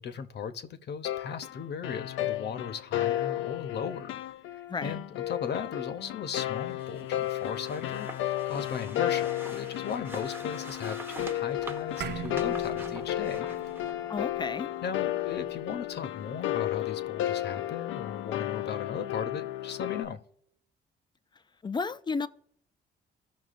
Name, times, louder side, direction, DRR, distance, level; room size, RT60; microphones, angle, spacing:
voice 1, 0.0-4.1 4.5-13.5 14.8-20.2, left 7 dB, 60° left, 0.8 m, -37 dB
sound 1, 1.0-20.0, left 13 dB, 80° left, 0.5 m, -33 dB
sound 2, 6.7-13.9, right 2 dB, 10° right, 0.9 m, -46 dB
sound 3, 12.0-16.6, right 10 dB, 60° right, 0.5 m, -43 dB
voice 2, 14.1-14.7 21.6-22.3, left 4 dB, 20° left, 0.4 m, -32 dB
14.5 x 5.9 x 2.5 m
cardioid pair, 90°, 20 cm